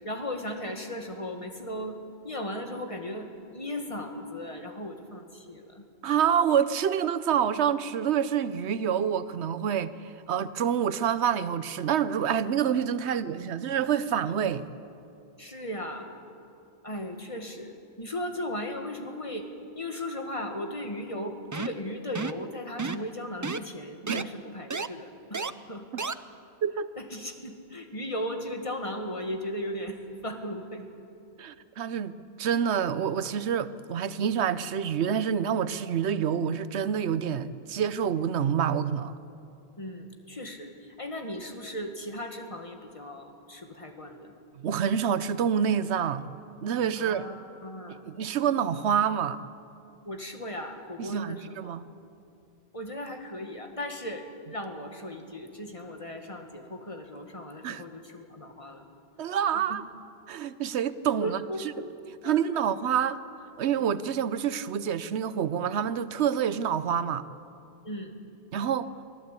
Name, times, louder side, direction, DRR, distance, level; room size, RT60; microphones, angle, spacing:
voice 1, 0.0-2.0 2.2-5.9 13.1-13.2 13.4-13.6 15.4-16.1 16.8-17.7 18.0-19.5 19.8-25.4 25.7-25.9 27.0-30.9 39.8-44.3 47.0-48.0 50.1-51.7 52.7-58.8 59.7-59.8 61.2-61.9 62.2-62.6 67.8-68.2, left 1 dB, 30° left, 1.8 m, -37 dB
voice 2, 6.0-9.9 10.3-14.6 24.0-24.3 26.6-26.9 31.4-39.1 44.6-46.3 46.6-47.2 48.0-49.4 51.0-51.8 57.6-57.8 59.2-59.8 60.3-61.4 62.2-63.2 63.6-67.2 68.5-68.9, right 8 dB, 85° right, 1.0 m, -27 dB
sound 1, 21.5-21.8 22.2-22.4 22.8-23.1 23.4-23.6 24.1-24.2 24.7-24.9 25.3-25.5 26.0-26.1, right 4 dB, 30° right, 0.3 m, -31 dB
23.5 x 15.5 x 8.3 m
omnidirectional pair, 1.1 m